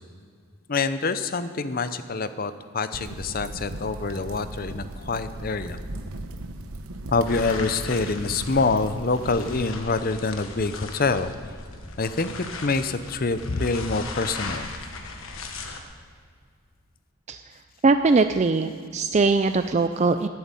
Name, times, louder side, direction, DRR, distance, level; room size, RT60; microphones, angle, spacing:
voice 1, 0.7-5.8 7.1-11.3 12.0-12.3 12.6-14.7, left 3 dB, 40° left, 12 dB, 0.6 m, -26 dB
sound 1, 2.9-9.7, right 1 dB, 80° right, 0.9 m, -37 dB
sound 2, 7.3-15.8, left 3 dB, 70° left, 1.4 m, -38 dB
voice 2, 17.8-20.3, right 3 dB, 30° right, 9 dB, 0.3 m, -21 dB
13.5 x 7.9 x 9.0 m, 2.1 s
head